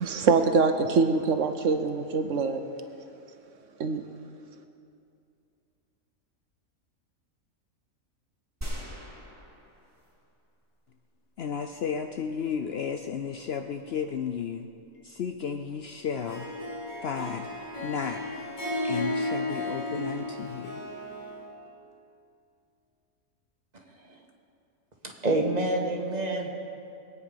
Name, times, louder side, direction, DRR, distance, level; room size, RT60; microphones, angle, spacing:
voice 1, 0.0-2.6 3.8-4.0, right 4 dB, 65° right, 7 dB, 1.1 m, -24 dB
sound 1, 8.6-10.4 10.9-11.0, right 1 dB, 10° right, 2.5 m, -40 dB
voice 2, 11.4-14.7 15.0-16.5 17.0-17.5 17.8-18.2 18.8-20.8, left 7 dB, 60° left, 6 dB, 0.7 m, -33 dB
Harp, 16.1-21.4, left 1 dB, 35° left, 3.0 m, -34 dB
voice 3, 25.2-26.5, right 2 dB, 30° right, 0 dB, 1.6 m, -27 dB
22.5 x 9.4 x 5.4 m, 2.6 s
omnidirectional pair, 1.4 m